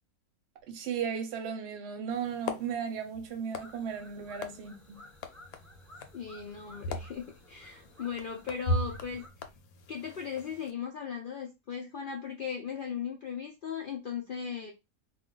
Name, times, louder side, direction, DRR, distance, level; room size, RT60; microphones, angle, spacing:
voice 1, 0.7-5.1, right 7 dB, 60° right, 0.8 m, -36 dB
sound 1, 2.1-10.7, left 1 dB, 90° left, 1.1 m, -39 dB
sound 2, 3.5-9.3, left 1 dB, ahead, 0.6 m, -55 dB
voice 2, 6.1-9.2 9.9-14.7, left 6 dB, 70° left, 0.4 m, -37 dB
2.4 x 2.3 x 3.7 m
omnidirectional pair, 1.5 m